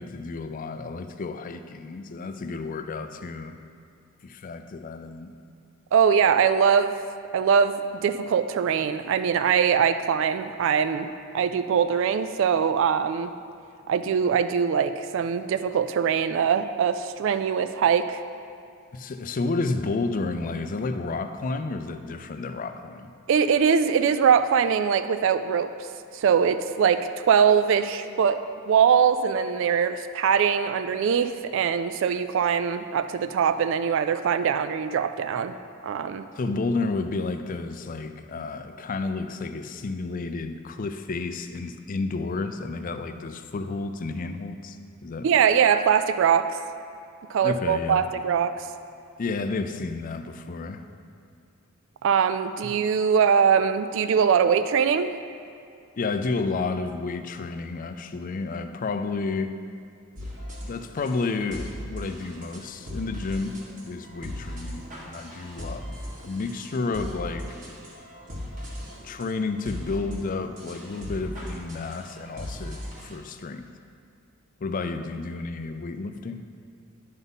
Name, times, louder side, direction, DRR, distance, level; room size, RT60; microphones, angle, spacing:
voice 1, 0.0-3.6 4.2-5.3 18.9-23.1 36.4-44.8 45.0-45.3 47.4-48.1 49.2-50.9 56.0-59.5 60.1-60.3 60.6-63.6 63.9-67.5 69.0-73.7 74.6-76.4, left 3 dB, 40° left, 8 dB, 0.4 m, -31 dB
voice 2, 5.9-7.0 7.3-7.8 8.0-13.3 13.9-18.2 23.3-25.7 26.1-35.6 35.8-36.2 45.2-46.6 47.3-48.7 52.0-55.1, right 7 dB, 65° right, 10 dB, 0.3 m, -22 dB
sound 1, 60.2-73.2, equal, 40° right, 1.6 m, -38 dB
10.5 x 4.0 x 5.4 m, 2.4 s
head